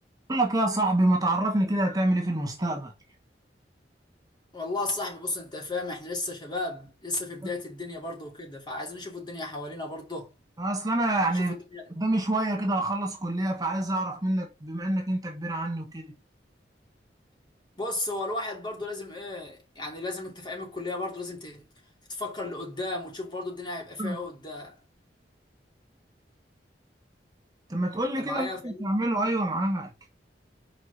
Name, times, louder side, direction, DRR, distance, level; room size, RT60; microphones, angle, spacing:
voice 1, 0.3-2.9 10.6-11.5 12.0-16.1 24.0-24.2 27.7-29.9, right 1 dB, 20° right, 1.1 m, -27 dB
voice 2, 4.5-10.3 11.3-11.8 17.8-21.7 22.1-24.8 28.2-28.9, left 2 dB, 25° left, 2.6 m, -34 dB
5.3 x 4.9 x 4.1 m
head